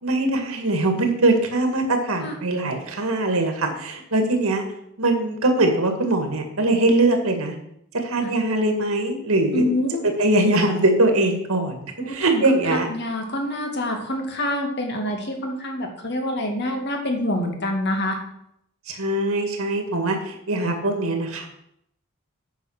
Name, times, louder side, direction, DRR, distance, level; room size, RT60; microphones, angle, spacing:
voice 1, 0.0-4.6 5.0-7.5 7.9-9.7 10.2-12.9 18.9-21.5, right 2 dB, 90° right, 5 dB, 1.9 m, -22 dB
voice 2, 9.5-10.1 12.0-12.4 12.7-18.2, left 1 dB, 50° left, 2 dB, 2.1 m, -26 dB
9.2 x 5.4 x 6.5 m, 0.76 s
head